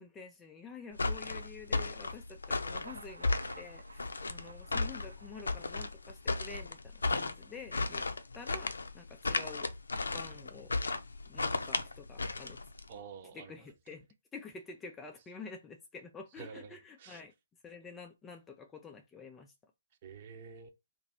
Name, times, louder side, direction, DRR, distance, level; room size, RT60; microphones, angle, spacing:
voice 1, 0.0-8.0 8.3-9.7 10.1-10.8 11.3-12.6 13.3-14.1 14.3-17.3 17.6-19.5, left 5 dB, 10° left, 0.4 m, -49 dB
sound 1, 0.9-12.9, left 3 dB, 75° left, 0.5 m, -35 dB
Thunder, 2.4-6.4, right 2 dB, 85° right, 0.8 m, -52 dB
voice 2, 4.2-4.8 12.9-13.7 16.4-17.2 20.0-20.7, right 6 dB, 35° right, 0.9 m, -50 dB
2.9 x 2.6 x 4.2 m
figure-of-eight pair, 140°, 0 cm